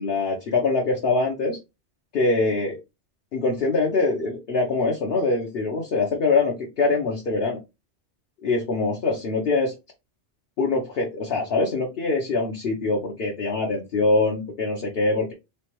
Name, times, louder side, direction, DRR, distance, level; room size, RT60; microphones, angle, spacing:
voice 1, 0.0-1.6 2.1-2.8 3.3-7.6 8.4-9.7 10.6-15.3, left 3 dB, 60° left, 0 dB, 1.0 m, -23 dB
3.3 x 3.3 x 3.0 m, 0.24 s
omnidirectional pair, 1.2 m